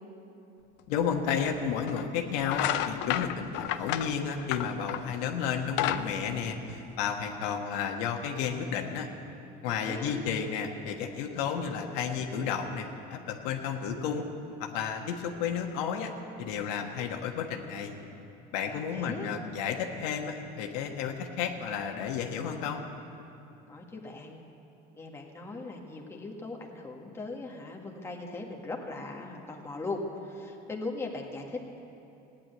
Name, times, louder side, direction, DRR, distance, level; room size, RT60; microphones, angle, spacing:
voice 1, 0.9-9.1 9.6-14.2 14.6-16.1 16.4-18.0 18.5-22.8, left 7 dB, 85° left, 3 dB, 1.5 m, -32 dB
sound 1, 1.1-1.2 1.9-2.1 2.4-5.2 5.5-7.2, left 12 dB, 65° left, 0.7 m, -31 dB
voice 2, 9.8-10.2 18.6-19.3 23.7-24.4 25.0-31.8, left 3 dB, 10° left, 0 dB, 1.6 m, -39 dB
15.5 x 10.5 x 9.1 m, 2.8 s
cardioid pair, 140°, 20 cm